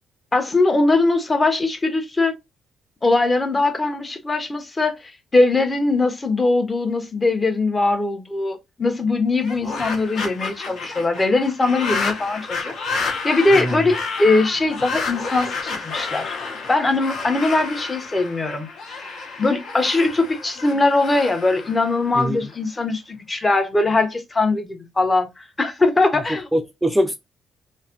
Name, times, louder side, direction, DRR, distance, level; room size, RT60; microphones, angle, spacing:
voice 1, 0.3-2.3 3.0-12.7 13.2-16.3 16.7-18.7 19.4-26.5, left 2 dB, 25° left, 0.7 m, -21 dB
sound 1, 9.4-22.5, left 4 dB, 70° left, 0.9 m, -30 dB
voice 2, 13.5-13.9 22.2-22.4 26.5-27.1, equal, 10° right, 0.3 m, -22 dB
3.2 x 2.0 x 2.8 m
cardioid pair, 90°, 0 cm